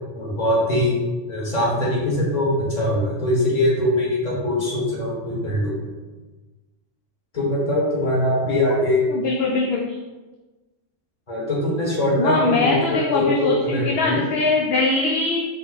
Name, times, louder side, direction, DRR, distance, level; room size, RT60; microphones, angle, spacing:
voice 1, 0.1-1.0 1.3-5.9 7.3-9.1 11.3-14.2, left 1 dB, 35° left, -5 dB, 1.5 m, -22 dB
voice 2, 9.1-10.0 12.2-15.4, left 3 dB, 65° left, 0 dB, 0.7 m, -22 dB
5.5 x 2.2 x 4.0 m, 1.2 s
omnidirectional pair, 1.3 m